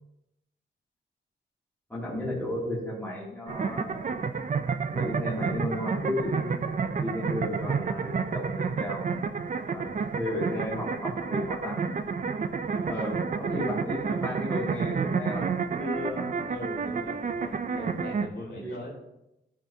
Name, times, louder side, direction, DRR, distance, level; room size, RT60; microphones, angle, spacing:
voice 1, 1.9-4.2 4.9-6.6 7.0-9.1 9.7-11.9 12.9-15.5 15.8-16.5 18.5-18.8, left 1 dB, 10° left, -7 dB, 2.7 m, -34 dB
sound 1, 3.5-18.3, right 5 dB, 40° right, 0.5 m, -30 dB
voice 2, 13.5-13.8 16.5-18.9, left 1 dB, 60° left, -4 dB, 3.6 m, -40 dB
14.5 x 6.1 x 2.8 m, 0.87 s
wide cardioid pair, 140°, 20 cm